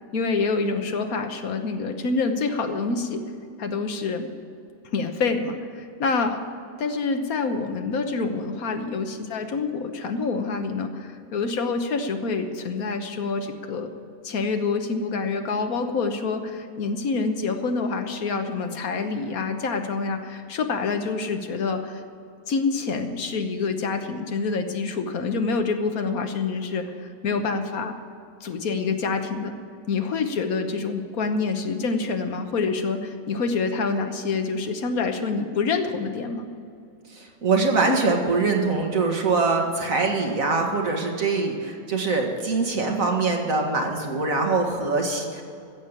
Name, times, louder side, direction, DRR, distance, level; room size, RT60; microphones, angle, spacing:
voice 1, 0.1-3.2 3.6-4.3 4.8-6.4 6.8-13.9 14.2-22.0 22.5-27.9 28.4-29.6 29.9-36.5, left 4 dB, 80° left, 6 dB, 1.5 m, -27 dB
voice 2, 37.1-45.4, right 3 dB, 70° right, 1 dB, 2.2 m, -23 dB
15.0 x 7.5 x 8.2 m, 2.4 s
omnidirectional pair, 1.5 m